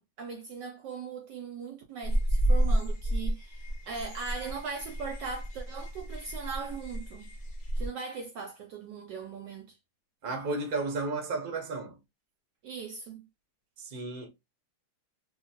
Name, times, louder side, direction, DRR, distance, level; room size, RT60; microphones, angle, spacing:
voice 1, 0.0-7.3 7.8-9.8 12.6-13.2, right 5 dB, 75° right, 1.0 m, -39 dB
sound 1, 2.0-7.9, right 1 dB, 60° left, 0.5 m, -30 dB
voice 2, 10.2-12.0 13.8-14.3, right 3 dB, 40° right, 0.8 m, -33 dB
2.8 x 2.7 x 2.8 m
omnidirectional pair, 2.2 m